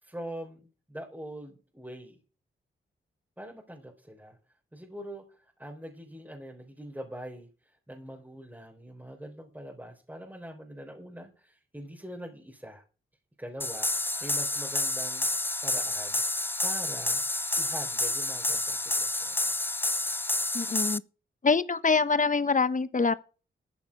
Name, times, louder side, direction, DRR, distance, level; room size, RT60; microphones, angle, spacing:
voice 1, 0.0-2.2 3.4-4.4 4.7-12.8 13.4-16.2 16.6-17.2 17.6-19.5, equal, 10° right, 4.1 m, -43 dB
sound 1, 13.6-21.0, left 2 dB, 10° left, 0.5 m, -29 dB
voice 2, 20.5-21.0 21.4-23.1, left 4 dB, 40° left, 1.1 m, -25 dB
13.5 x 7.1 x 5.3 m
cardioid pair, 50°, 21 cm